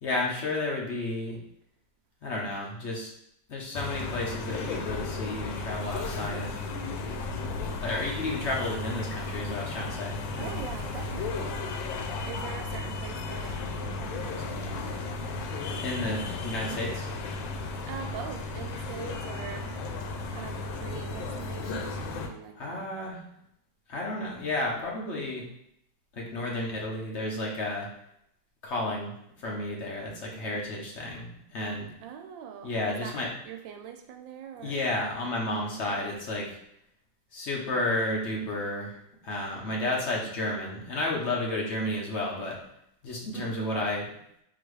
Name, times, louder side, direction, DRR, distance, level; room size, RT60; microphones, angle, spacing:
voice 1, 0.0-1.4 2.2-3.1 3.5-6.6 7.8-10.5 15.8-17.1 22.6-23.2 23.9-25.5 26.1-27.9 28.6-29.1 29.4-31.9 32.6-33.3 34.6-36.5 37.3-39.0 39.2-42.6 43.0-44.1, left 2 dB, 45° left, -2 dB, 1.0 m, -32 dB
sound 1, 3.7-22.3, left 3 dB, 85° left, 1.3 m, -34 dB
voice 2, 10.4-11.6 12.2-14.7 17.9-19.7 20.3-22.9 32.0-33.2 33.4-34.8 35.9-36.2 43.3-43.7, right 8 dB, 85° right, 4 dB, 1.3 m, -42 dB
3.9 x 2.9 x 4.7 m, 0.74 s
omnidirectional pair, 2.0 m